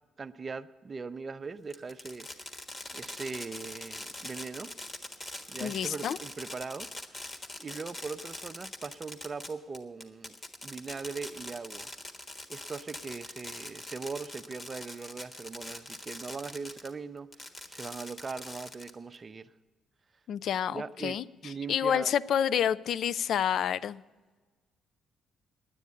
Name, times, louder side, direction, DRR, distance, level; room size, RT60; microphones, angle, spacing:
voice 1, 0.2-2.6 2.9-4.7 5.5-7.3 7.6-10.3 10.6-11.9 12.5-17.3 17.7-19.5 20.7-22.1, right 4 dB, 35° right, 11 dB, 0.5 m, -40 dB
Fireworks, 1.7-16.9 17.3-19.2, left 2 dB, 35° left, 1.4 m, -43 dB
voice 2, 5.6-6.2 20.3-24.0, left 9 dB, 65° left, 18 dB, 0.3 m, -29 dB
9.8 x 9.3 x 9.5 m, 1.4 s
cardioid pair, 90°, 0 cm